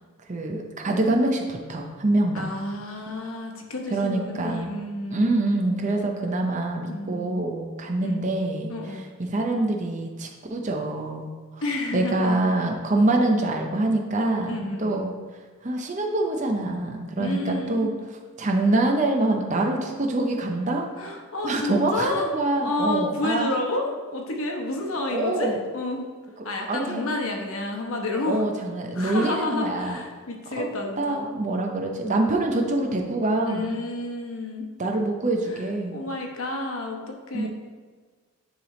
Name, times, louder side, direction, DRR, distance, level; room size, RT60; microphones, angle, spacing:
voice 1, 0.3-2.5 3.9-4.7 5.1-8.7 9.2-11.6 11.9-15.1 15.6-17.9 18.4-20.9 21.4-23.5 25.1-25.6 26.7-27.1 28.2-30.0 30.6-30.7 31.0-33.7 34.8-36.0 37.3-37.5, right 2 dB, 35° right, 2 dB, 0.6 m, -25 dB
voice 2, 2.3-5.4 6.9-7.4 8.0-8.2 8.7-9.0 11.6-12.4 14.5-15.0 17.2-17.9 21.0-22.3 22.6-26.1 26.4-28.4 28.9-31.2 33.5-34.7 35.5-37.5, left 2 dB, 70° left, 1 dB, 1.0 m, -30 dB
9.7 x 3.5 x 3.8 m, 1.5 s
head